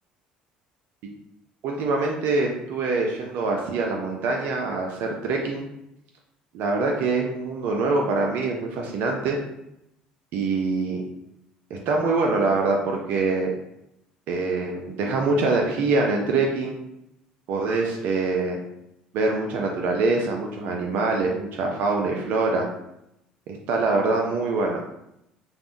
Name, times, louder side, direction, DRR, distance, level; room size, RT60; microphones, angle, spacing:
voice 1, 1.6-5.7 6.5-9.4 10.3-11.0 11.7-13.5 14.3-16.7 17.5-18.6 19.1-22.7 23.5-24.8, right 3 dB, 60° right, 0 dB, 0.4 m, -24 dB
3.3 x 2.1 x 2.5 m, 0.83 s
hypercardioid pair, 60°, 4 cm